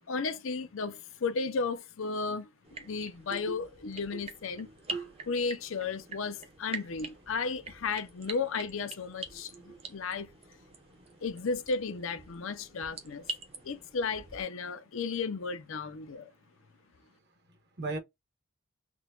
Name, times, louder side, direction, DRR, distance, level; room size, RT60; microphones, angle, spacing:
voice 1, 0.1-2.5 2.8-4.7 5.3-10.3 11.2-13.3 13.6-16.3, left 4 dB, 65° left, 0.5 m, -34 dB
sound 1, 2.6-14.4, right 4 dB, 30° right, 0.7 m, -45 dB
voice 2, 3.1-3.6 4.1-4.2 4.9-5.3 9.3-9.8 11.1-11.2 17.5-18.0, right 3 dB, 50° right, 1.1 m, -40 dB
6.0 x 2.2 x 2.3 m
head